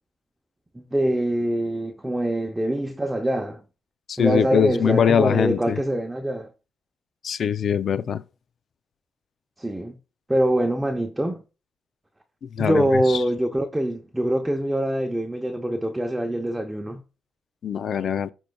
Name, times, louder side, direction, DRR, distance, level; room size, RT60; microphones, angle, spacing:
voice 1, 0.7-3.6 4.2-6.5 9.6-10.0 10.3-11.4 12.6-17.0, right 1 dB, 10° right, 0.7 m, -24 dB
voice 2, 4.1-5.8 7.2-8.2 12.4-13.2 17.6-18.3, left 8 dB, 55° left, 0.4 m, -22 dB
11.5 x 4.5 x 2.3 m
cardioid pair, 90°, 0 cm